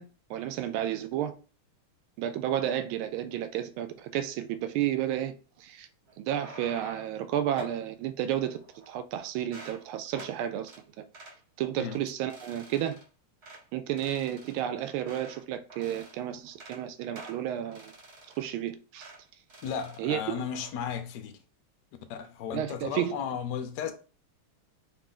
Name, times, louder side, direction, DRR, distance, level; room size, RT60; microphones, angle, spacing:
voice 1, 0.0-1.4 2.2-5.9 6.2-8.6 8.9-10.7 11.6-13.0 13.7-17.9 18.4-19.1 20.0-20.2 22.5-23.2, right 11 dB, 80° right, 1.4 m, -32 dB
sound 1, 6.1-7.2 7.6-7.8 8.5-9.1 9.4-9.8 10.1-10.4 10.7-10.8 11.1-11.4 11.8-12.0 12.3-13.0 13.4-13.6 14.0-15.4 15.7-16.2 16.5-16.8 17.1-18.6 19.0-19.2 19.5-20.0 20.3-20.7, right 2 dB, 40° right, 1.0 m, -48 dB
voice 2, 19.6-21.3 22.1-23.9, left 8 dB, 70° left, 1.0 m, -34 dB
3.9 x 2.5 x 3.7 m
omnidirectional pair, 2.3 m